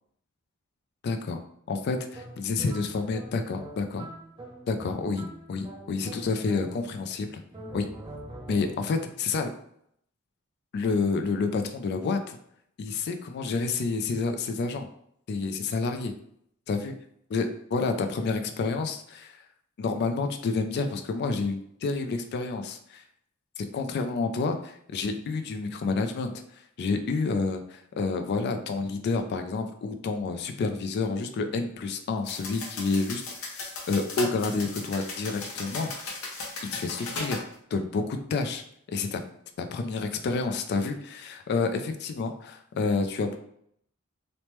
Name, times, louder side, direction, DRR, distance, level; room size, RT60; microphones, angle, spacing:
voice 1, 1.0-1.4 1.7-4.1 4.7-7.4 7.7-7.9 8.5-9.5 10.7-12.4 12.8-14.9 15.3-16.1 16.7-17.0 17.3-19.4 19.8-23.0 23.6-26.3 26.8-36.1 36.6-37.4 37.7-38.6 38.9-39.2 39.6-43.4, left 4 dB, 50° left, 6 dB, 0.3 m, -29 dB
sound 1, 2.1-7.1 7.5-9.0, right 1 dB, 20° right, 0.4 m, -43 dB
sound 2, 32.3-37.4, left 3 dB, 80° left, 0.7 m, -37 dB
3.1 x 2.1 x 2.9 m, 0.70 s
head